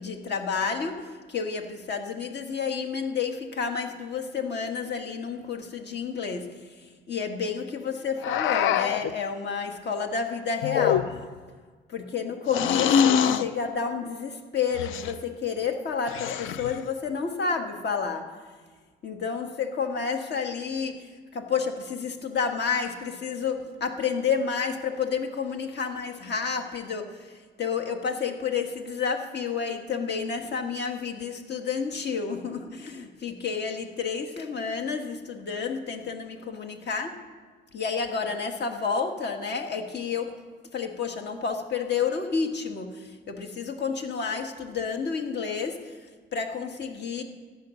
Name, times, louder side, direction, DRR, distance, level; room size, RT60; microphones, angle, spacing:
voice 1, 0.0-6.5 6.8-11.1 11.9-18.3 19.0-21.1 21.3-37.1 37.7-40.3 40.7-46.1 46.3-47.2, left 5 dB, 60° left, 4 dB, 1.7 m, -30 dB
sound 1, 8.2-9.1 10.6-11.4 12.5-13.5 14.7-15.2 16.1-16.8, left 8 dB, 85° left, 0.6 m, -24 dB
14.0 x 9.7 x 6.5 m, 1.4 s
cardioid pair, 90°, 20 cm